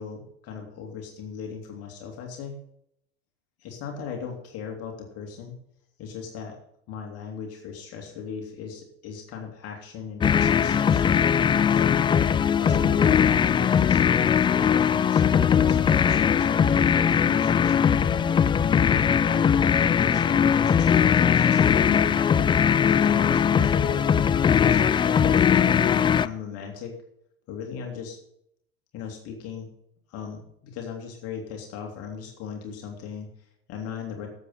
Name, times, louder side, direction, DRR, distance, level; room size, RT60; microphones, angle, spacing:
voice 1, 0.0-2.5 3.6-5.5 6.0-6.6 6.9-11.1 11.7-12.0 12.5-16.7 17.1-18.3 18.8-22.2 22.9-24.1 24.6-27.0 27.5-28.2 28.9-29.7 30.1-34.3, left 6 dB, 50° left, 2 dB, 2.7 m, -37 dB
sound 1, 10.2-26.3, left 7 dB, 15° left, 0.3 m, -20 dB
12.5 x 8.0 x 5.6 m, 0.73 s
hypercardioid pair, 90°, 31 cm